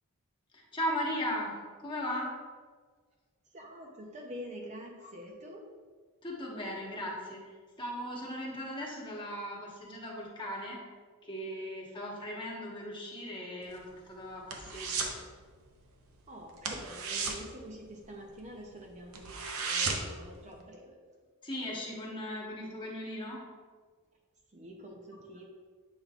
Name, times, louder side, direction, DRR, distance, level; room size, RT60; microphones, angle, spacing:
voice 1, 0.5-1.5 1.8-2.3 5.0-5.1 6.2-7.4 7.8-10.8 11.2-15.1 21.4-23.4, equal, 20° left, -3 dB, 1.2 m, -37 dB
voice 2, 3.5-5.6 16.3-21.0 24.5-25.5, equal, 35° right, 0 dB, 0.6 m, -46 dB
sound 1, 13.6-15.2 15.5-15.8 16.1-16.2 16.6-18.4 18.8-18.9 19.1-20.2 20.6-20.7, right 4 dB, 70° right, 0.7 m, -35 dB
8.1 x 5.2 x 2.4 m, 1.5 s
head